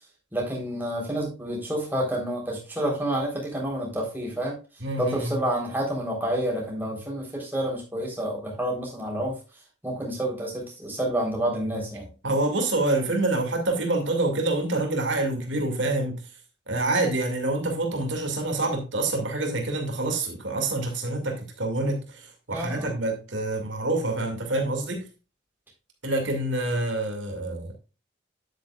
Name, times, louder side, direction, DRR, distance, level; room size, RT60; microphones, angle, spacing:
voice 1, 0.3-4.6 5.0-9.4 9.8-12.1 22.5-22.9, right 1 dB, 10° right, 3.7 m, -29 dB
voice 2, 4.8-5.3 12.2-16.2 16.7-25.0 26.0-27.8, right 2 dB, 80° right, 2.4 m, -27 dB
9.7 x 8.5 x 2.4 m
head